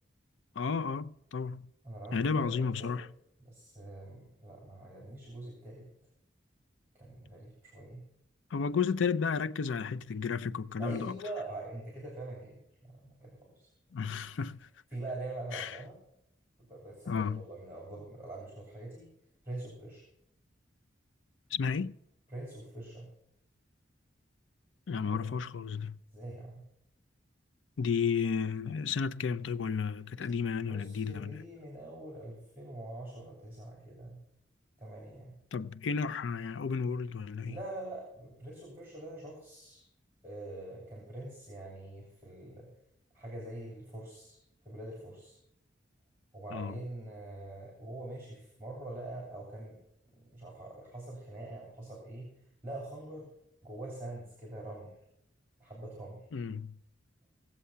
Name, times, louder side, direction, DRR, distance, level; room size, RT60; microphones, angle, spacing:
voice 1, 0.6-1.7 2.1-3.1 8.5-11.2 13.9-14.7 15.5-15.8 17.1-17.4 21.5-22.0 24.9-26.0 27.8-31.4 35.5-37.6 46.5-46.8 56.3-56.8, left 5 dB, 85° left, 0.5 m, -32 dB
voice 2, 1.8-2.9 3.4-5.8 6.9-8.0 10.8-13.7 14.0-14.1 14.9-16.0 16.7-19.1 19.4-20.0 22.3-23.1 25.0-25.2 26.1-26.6 30.2-30.3 30.7-34.2 34.8-35.3 37.5-39.8 40.2-42.7 43.1-44.4 44.6-45.4 46.3-49.8 50.1-52.3 52.6-53.3 53.6-54.9 55.6-56.2, right 2 dB, 10° right, 3.1 m, -44 dB
17.0 x 7.5 x 5.6 m
head